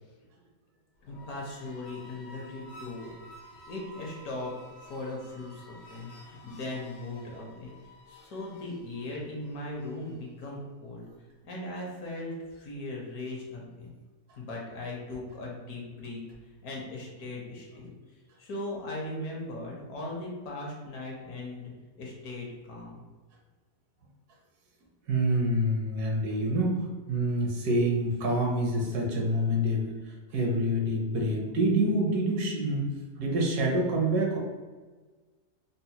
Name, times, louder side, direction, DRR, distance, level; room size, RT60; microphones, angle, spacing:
sound 1, 1.0-10.4, left 1 dB, 85° left, 1.3 m, -52 dB
voice 1, 1.0-3.1 3.7-4.5 4.8-7.7 8.1-11.0 11.4-13.9 14.4-16.2 16.6-17.9 18.4-21.7 22.0-23.0, left 2 dB, 65° left, -2 dB, 1.2 m, -38 dB
voice 2, 25.1-32.9 33.2-34.4, right 1 dB, 75° right, -1 dB, 1.2 m, -27 dB
4.1 x 2.0 x 2.8 m, 1.4 s
omnidirectional pair, 1.8 m